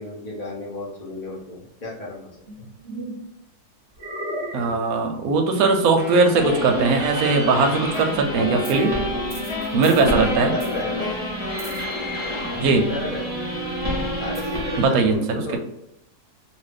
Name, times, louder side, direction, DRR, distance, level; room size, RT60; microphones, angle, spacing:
voice 1, 0.0-2.4 9.9-11.2 12.9-13.4 14.2-15.6, left 1 dB, 45° left, -5 dB, 0.5 m, -33 dB
sound 1, 2.4-3.3 4.0-4.8 6.3-6.8, equal, 20° right, 1.0 m, -32 dB
voice 2, 4.5-9.0 9.7-10.5 12.6-12.9 14.8-15.6, right 3 dB, 70° right, 5 dB, 1.0 m, -20 dB
Wind instrument woodwind instrument, 6.0-12.8, left 4 dB, 80° left, 1.2 m, -35 dB
sound 2, 6.4-14.9, equal, 20° left, 1.0 m, -28 dB
2.6 x 2.5 x 3.4 m, 0.81 s
omnidirectional pair, 1.7 m